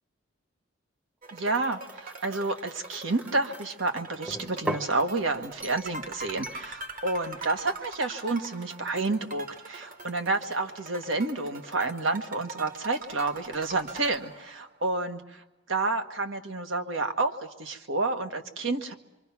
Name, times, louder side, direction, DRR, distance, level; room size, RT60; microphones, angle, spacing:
sound 1, 1.2-14.8, right 3 dB, 45° right, 1.4 m, -43 dB
voice 1, 1.3-18.9, right 3 dB, 85° right, 7 dB, 1.6 m, -30 dB
sound 2, 1.4-3.7 4.3-5.0 5.6-6.0 6.4-6.7, right 1 dB, 10° right, 0.8 m, -39 dB
27.0 x 23.5 x 6.0 m, 1.0 s
head